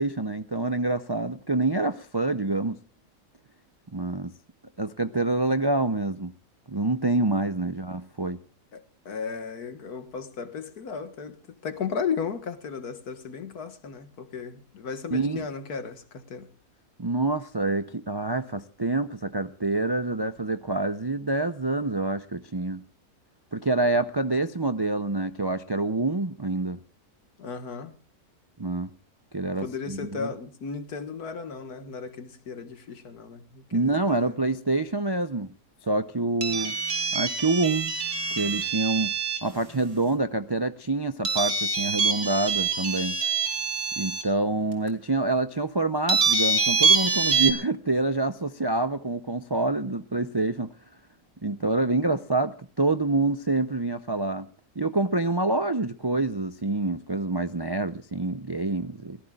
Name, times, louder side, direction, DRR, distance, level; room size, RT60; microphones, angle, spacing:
voice 1, 0.0-2.8 3.9-4.3 4.8-6.3 6.7-8.4 15.1-15.5 17.0-22.8 23.5-26.8 28.6-28.9 29.3-30.3 33.7-35.5 35.8-36.8 37.1-37.9 38.4-39.1 39.4-43.2 44.0-50.7 51.4-54.5 54.8-59.2, right 2 dB, 40° right, 0.3 m, -27 dB
voice 2, 8.7-16.5 27.4-27.9 29.4-34.4, left 6 dB, 80° left, 2.0 m, -35 dB
sound 1, 36.4-39.5 41.3-44.2 44.9-45.0 46.1-47.5, right 4 dB, 70° right, 3.2 m, -25 dB
25.5 x 18.0 x 2.4 m
omnidirectional pair, 1.6 m